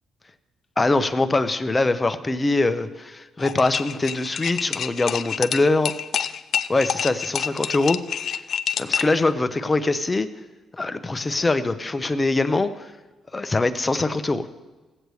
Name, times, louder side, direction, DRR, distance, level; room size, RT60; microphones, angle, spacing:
voice 1, 0.8-5.9 6.7-8.0 8.8-10.3 10.8-12.9 13.3-14.5, left 2 dB, 20° left, 10 dB, 0.7 m, -23 dB
sound 1, 3.4-9.2, left 8 dB, 60° left, 0.4 m, -27 dB
17.0 x 8.0 x 3.2 m, 1.2 s
cardioid pair, 90°, 0 cm